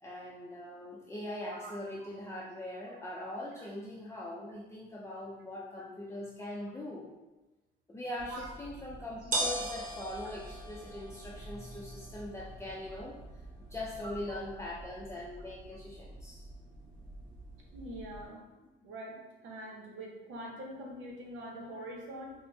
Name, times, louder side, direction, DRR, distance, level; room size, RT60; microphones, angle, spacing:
voice 1, 0.0-7.1 7.9-13.2 13.6-16.4, left 1 dB, 15° left, -5 dB, 0.5 m, -41 dB
voice 2, 1.4-1.7 2.9-3.0 3.6-3.7 8.3-8.5 14.0-14.1 17.7-18.4 18.8-22.3, right 1 dB, 80° right, 0 dB, 0.9 m, -44 dB
sound 1, 8.2-18.2, right 1 dB, 40° right, 1.0 m, -42 dB
4.9 x 2.1 x 2.7 m, 1.1 s
cardioid pair, 90°, 20 cm